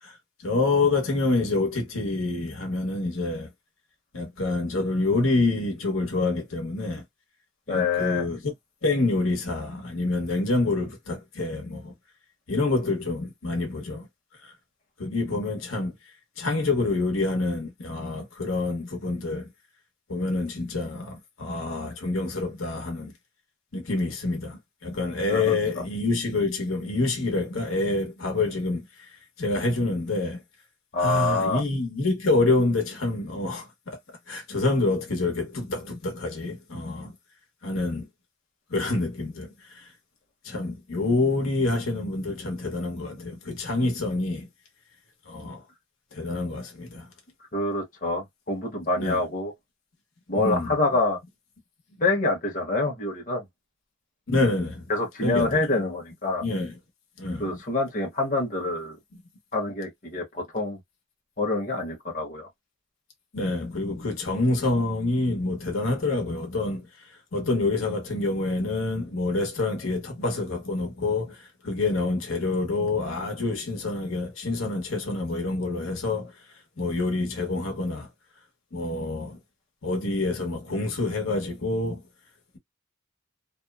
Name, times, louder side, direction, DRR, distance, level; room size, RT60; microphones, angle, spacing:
voice 1, 0.0-3.5 4.1-7.0 7.7-8.5 8.8-11.9 12.5-14.1 14.4-14.5 15.0-16.0 16.4-19.5 20.1-23.1 23.7-30.4 31.0-34.0 34.3-37.1 37.6-38.1 38.7-39.9 40.4-44.5 45.3-45.6 46.1-47.1 49.0-49.2 50.3-50.7 54.3-54.9 55.2-55.6 56.4-56.7 57.2-57.6 63.3-76.3 76.8-78.1 78.7-79.4 79.8-82.0, left 2 dB, 85° left, 0.9 m, -27 dB
voice 2, 7.7-8.2 25.3-25.8 30.9-31.6 47.5-49.5 50.3-51.2 52.0-53.4 54.9-56.4 57.4-59.0 59.5-60.8 61.4-62.5, left 3 dB, 45° left, 0.9 m, -26 dB
2.9 x 2.0 x 2.3 m
head